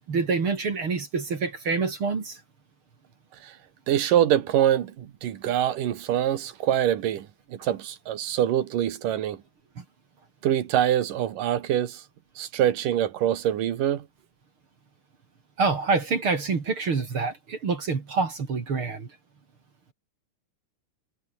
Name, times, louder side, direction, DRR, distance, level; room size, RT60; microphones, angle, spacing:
voice 1, 0.1-2.4 7.6-7.7 9.8-9.9 15.6-19.1, right 4 dB, 40° right, 3.4 m, -26 dB
voice 2, 3.9-9.4 10.4-12.0 12.4-14.1, right 11 dB, 80° right, 3.3 m, -24 dB
omnidirectional pair, 3.7 m